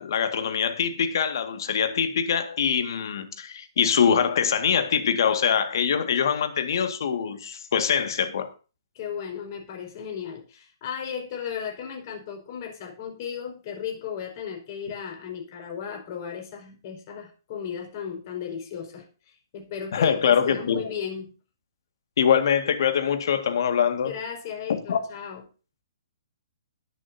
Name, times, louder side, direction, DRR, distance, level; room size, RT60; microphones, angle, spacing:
voice 1, 0.0-8.5 19.9-20.9 22.2-24.1 24.7-25.0, left 7 dB, 65° left, 2.0 m, -23 dB
voice 2, 8.9-19.1 19.5-21.3 24.0-25.4, left 7 dB, 45° left, 5.0 m, -35 dB
21.5 x 7.1 x 2.8 m
hypercardioid pair, 145°, 2 cm